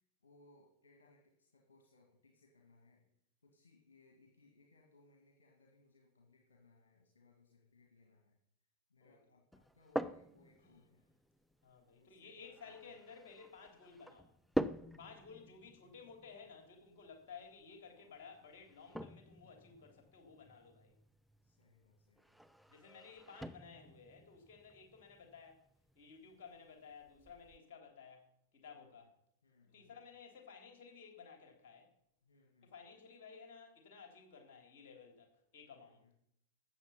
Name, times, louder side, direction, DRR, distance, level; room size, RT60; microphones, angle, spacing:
voice 1, 0.0-3.1 3.4-8.4 8.9-11.0 11.9-13.0 14.7-15.2 21.4-22.4 28.7-29.1 29.4-30.0 32.2-32.7 35.7-36.2, left 3 dB, 70° left, 0 dB, 2.1 m, -68 dB
sound 1, 9.5-27.6, right 1 dB, ahead, 0.5 m, -47 dB
voice 2, 11.6-14.3 15.0-20.9 22.7-25.6 25.9-28.3 28.5-29.1 29.6-31.9 32.6-36.0, left 5 dB, 50° left, 4 dB, 3.4 m, -55 dB
13.5 x 8.3 x 5.7 m, 0.72 s
figure-of-eight pair, 90°, 0 cm